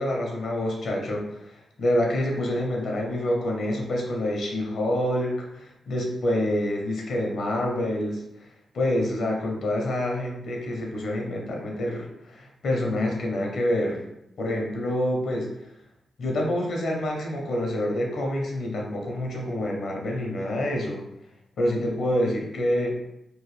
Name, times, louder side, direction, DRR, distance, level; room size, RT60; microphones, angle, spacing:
voice 1, 0.0-1.5 1.8-14.0 14.4-15.5 16.2-21.0 21.6-23.0, left 1 dB, 75° left, 0 dB, 0.7 m, -27 dB
3.0 x 2.2 x 3.3 m, 0.84 s
supercardioid pair, 45°, 0 cm